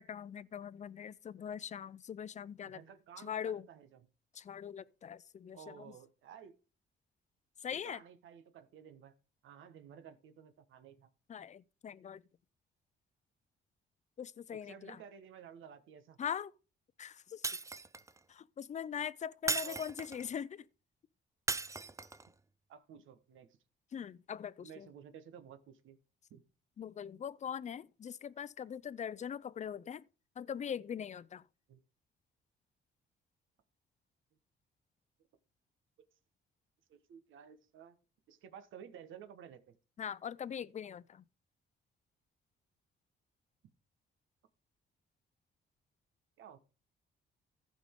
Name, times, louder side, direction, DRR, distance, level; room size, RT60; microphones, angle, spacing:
voice 1, 0.0-2.8 3.2-3.6 4.4-5.9 7.6-8.0 11.3-12.2 14.2-15.0 16.2-16.5 17.0-17.4 18.3-20.6 23.9-24.9 26.8-30.0 30.4-31.4 40.0-41.2, left 8 dB, 35° left, 0.5 m, -42 dB
voice 2, 2.6-4.0 5.5-6.5 7.7-9.1 9.4-11.1 14.5-16.2 19.4-19.8 22.7-23.5 24.6-26.0 26.3-26.4 31.7-31.8 36.9-38.0 38.3-39.8 46.4-46.6, right 8 dB, 80° right, 1.3 m, -54 dB
Shatter, 17.4-18.2 19.5-20.3 21.5-22.3, right 3 dB, 15° right, 0.5 m, -37 dB
15.0 x 5.2 x 3.7 m
cardioid pair, 90°, 20 cm